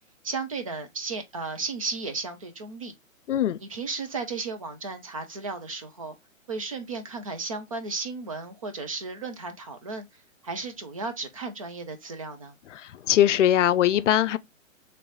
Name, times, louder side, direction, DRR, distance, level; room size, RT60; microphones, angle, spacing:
voice 1, 0.2-2.9 3.6-6.1 6.5-10.1 10.4-12.6, right 4 dB, 25° right, 0.4 m, -34 dB
voice 2, 3.3-3.6 12.7-14.4, left 11 dB, 60° left, 0.5 m, -21 dB
3.2 x 2.9 x 3.8 m
hypercardioid pair, 145°, 40 cm